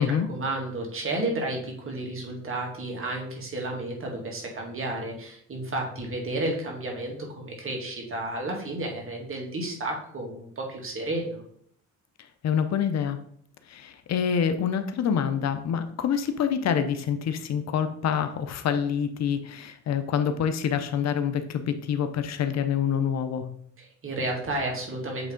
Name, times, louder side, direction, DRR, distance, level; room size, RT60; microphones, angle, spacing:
voice 1, 0.0-11.4 23.8-25.3, right 2 dB, 45° right, 0 dB, 2.2 m, -32 dB
voice 2, 12.4-13.2 13.7-23.5, left 8 dB, 60° left, 9 dB, 0.7 m, -26 dB
7.9 x 3.5 x 3.8 m, 0.65 s
cardioid pair, 90°, 30 cm